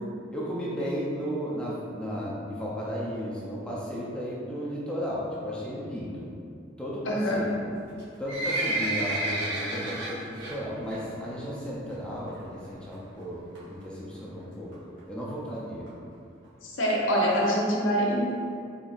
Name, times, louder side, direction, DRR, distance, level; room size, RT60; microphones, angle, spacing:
voice 1, 0.3-6.3 6.8-7.6 8.2-14.7 15.1-15.9, equal, 5° left, -6 dB, 0.5 m, -34 dB
voice 2, 7.1-7.4 16.6-18.3, equal, 85° left, -3 dB, 0.8 m, -25 dB
Livestock farm animals working animals, 7.9-10.5 10.9-11.2 11.5-11.6 12.3-12.4 12.6-12.7 12.9-13.0 13.5-13.8 14.4-14.5 14.7-14.8 15.0-15.1 15.3-15.4 15.9-16.0 16.4-16.5 17.0-17.1, right 2 dB, 70° right, 1.2 m, -30 dB
4.0 x 3.8 x 2.4 m, 2.4 s
head